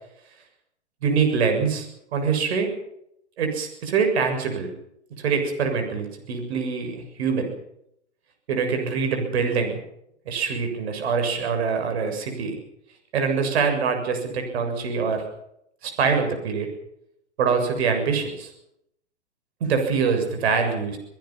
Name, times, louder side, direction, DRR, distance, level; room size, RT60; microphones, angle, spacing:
voice 1, 1.0-2.7 3.4-4.7 5.2-7.5 8.5-9.8 10.3-12.6 13.1-15.2 15.8-16.7 17.4-18.5 19.6-21.0, right 5 dB, 65° right, 5 dB, 7.2 m, -24 dB
24.5 x 20.0 x 5.9 m, 0.76 s
hypercardioid pair, 125°, 35 cm